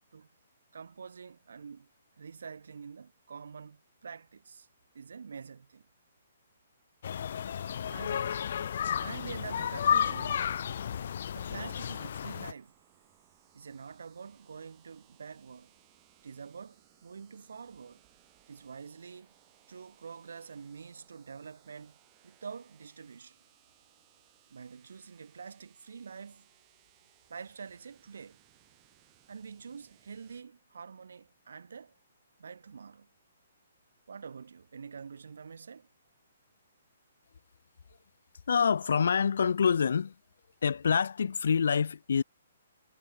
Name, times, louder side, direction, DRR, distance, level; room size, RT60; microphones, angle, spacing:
voice 1, 0.7-1.9 2.2-4.7 4.9-5.9 7.9-8.3 9.0-10.4 11.3-12.7 13.5-15.7 16.2-18.0 18.5-19.3 19.7-22.0 22.2-23.4 24.5-26.5 27.3-28.4 29.3-31.9 32.4-33.1 34.1-35.9, right 6 dB, 80° right, 7.4 m, -46 dB
sound 1, 7.0-12.5, left 8 dB, 50° left, 0.5 m, -32 dB
sound 2, 10.4-30.4, right 36 dB, 20° right, 3.6 m, -66 dB
voice 2, 38.5-40.1 40.6-42.2, left 6 dB, 70° left, 0.9 m, -26 dB
hypercardioid pair, 175°, 0 cm